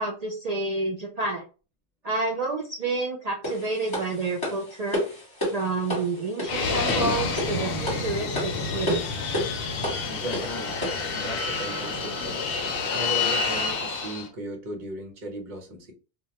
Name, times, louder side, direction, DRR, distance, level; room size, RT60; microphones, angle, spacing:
voice 1, 0.0-1.4 2.0-5.0 5.5-9.1, right 3 dB, 65° right, 0 dB, 0.4 m, -29 dB
sound 1, 3.4-11.1, equal, 25° left, 1.2 m, -32 dB
Fixed-wing aircraft airplane, 6.5-14.3, left 4 dB, 60° left, 0.7 m, -28 dB
voice 2, 10.1-10.8 11.1-15.9, right 1 dB, 50° right, 3 dB, 0.8 m, -37 dB
2.2 x 2.2 x 2.8 m, 0.34 s
omnidirectional pair, 1.2 m